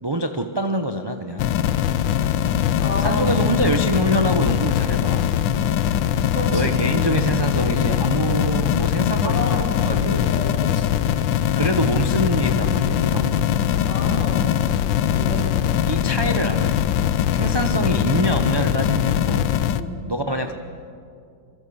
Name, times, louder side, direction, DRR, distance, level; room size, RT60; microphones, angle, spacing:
voice 1, 0.0-1.5 3.0-5.3 6.5-10.4 11.6-13.6 15.9-16.8 17.3-19.5 20.1-20.5, right 1 dB, 30° right, 6 dB, 0.4 m, -25 dB
sound 1, 1.4-19.8, left 10 dB, 80° left, 1.5 m, -21 dB
voice 2, 2.8-3.3 6.3-6.6 9.2-9.9 10.3-11.1 13.8-14.6 15.1-15.5 19.7-20.0, left 2 dB, 35° left, 0 dB, 3.7 m, -29 dB
25.5 x 24.0 x 7.0 m, 2.4 s
omnidirectional pair, 2.0 m